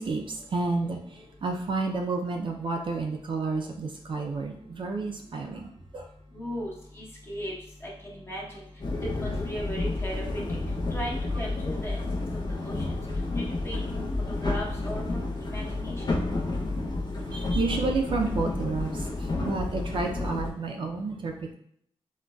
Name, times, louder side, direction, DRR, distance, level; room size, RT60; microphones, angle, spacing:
voice 1, 0.0-6.1 17.3-21.5, right 3 dB, 50° right, 2 dB, 0.4 m, -31 dB
voice 2, 6.3-7.5 7.8-8.6 9.2-10.2 10.9-12.2 12.6-12.8 13.4-14.1 14.4-16.0, equal, 20° left, -3 dB, 0.9 m, -37 dB
sound 1, 8.8-20.5, left 2 dB, 45° left, 0.6 m, -30 dB
3.8 x 2.1 x 2.2 m, 0.67 s
cardioid pair, 90°, 11 cm